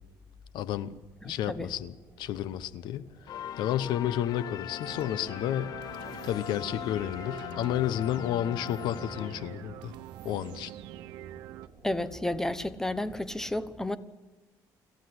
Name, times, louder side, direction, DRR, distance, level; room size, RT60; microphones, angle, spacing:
voice 1, 0.5-0.9 1.2-3.1 3.6-5.7 6.2-9.9 10.2-10.7, left 11 dB, 75° left, 1.0 m, -31 dB
voice 2, 1.2-1.7 11.8-14.0, left 1 dB, 5° left, 1.0 m, -32 dB
sound 1, 1.2-13.4, right 4 dB, 30° right, 4.3 m, -56 dB
sound 2, 3.3-9.9, left 11 dB, 55° left, 0.6 m, -40 dB
sound 3, 4.8-11.7, right 13 dB, 85° right, 0.9 m, -45 dB
26.5 x 14.0 x 7.9 m
cardioid pair, 130°, 8 cm